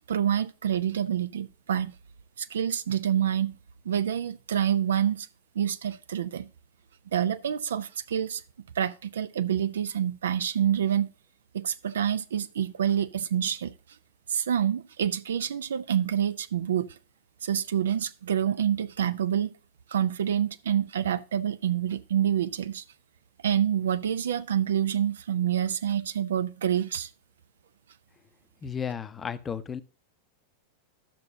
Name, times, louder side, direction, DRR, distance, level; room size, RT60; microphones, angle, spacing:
voice 1, 0.1-1.9 2.4-3.6 3.8-5.3 5.5-6.5 7.1-8.4 8.7-11.1 11.5-13.7 14.3-17.0 17.4-19.5 19.9-22.8 23.4-27.1, right 9 dB, 65° right, 0.5 m, -27 dB
voice 2, 28.6-29.8, left 7 dB, 20° left, 0.7 m, -33 dB
12.0 x 6.7 x 2.7 m
figure-of-eight pair, 90°, 0 cm